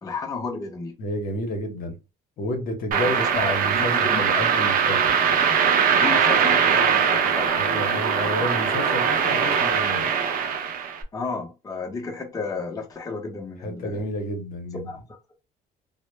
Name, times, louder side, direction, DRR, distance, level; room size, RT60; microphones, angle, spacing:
voice 1, 0.0-0.9 2.9-4.2 5.9-8.1 11.1-14.0 14.8-15.0, left 4 dB, 20° left, 0.7 m, -33 dB
voice 2, 1.0-2.0 2.4-5.0 7.6-10.1 13.6-14.9, left 1 dB, 60° left, 0.8 m, -30 dB
sound 1, 2.9-11.0, right 7 dB, 55° right, 0.6 m, -21 dB
2.1 x 2.0 x 3.1 m
cardioid pair, 110°, 17 cm